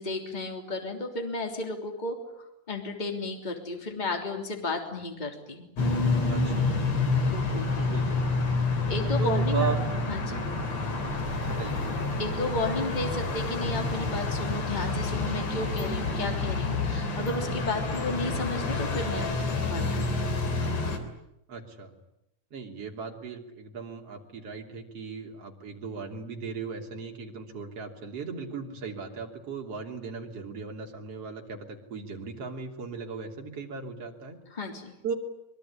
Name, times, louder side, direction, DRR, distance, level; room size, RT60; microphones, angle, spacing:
voice 1, 0.0-5.7 7.3-7.9 8.9-9.7 10.1-10.4 12.2-19.3 19.6-20.4 34.5-34.9, left 2 dB, 15° left, 4 dB, 3.2 m, -33 dB
sound 1, 5.8-21.0, left 3 dB, 65° left, 4.3 m, -28 dB
voice 2, 6.3-6.7 7.9-8.3 9.2-9.8 10.2-10.5 11.4-11.9 21.5-21.9 22.5-34.4 35.0-35.1, right 5 dB, 55° right, 2 dB, 4.1 m, -37 dB
24.5 x 22.0 x 10.0 m, 0.85 s
omnidirectional pair, 3.3 m